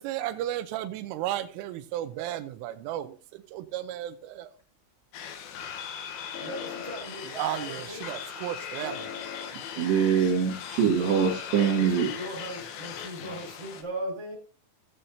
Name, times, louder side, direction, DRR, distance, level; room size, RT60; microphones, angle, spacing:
voice 1, 0.0-4.5 7.4-9.1, right 12 dB, 90° right, 10 dB, 3.3 m, -34 dB
sound 1, 5.1-13.8, left 8 dB, 75° left, 2.5 m, -39 dB
voice 2, 6.4-8.0 11.7-14.4, right 1 dB, 5° right, -2 dB, 4.6 m, -38 dB
voice 3, 9.8-12.1, right 7 dB, 65° right, -2 dB, 3.6 m, -23 dB
16.5 x 7.8 x 2.7 m, 0.40 s
omnidirectional pair, 5.5 m